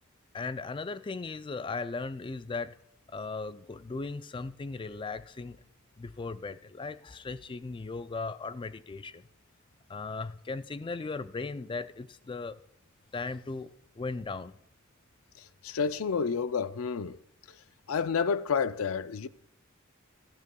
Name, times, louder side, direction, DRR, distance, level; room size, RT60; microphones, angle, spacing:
voice 1, 0.3-2.8 3.1-5.6 6.0-9.3 9.9-12.6 13.1-13.7 14.0-14.5, left 3 dB, 25° left, 0.3 m, -37 dB
voice 2, 15.6-17.2 17.9-19.3, left 6 dB, 85° left, 0.5 m, -29 dB
16.0 x 12.5 x 2.3 m
head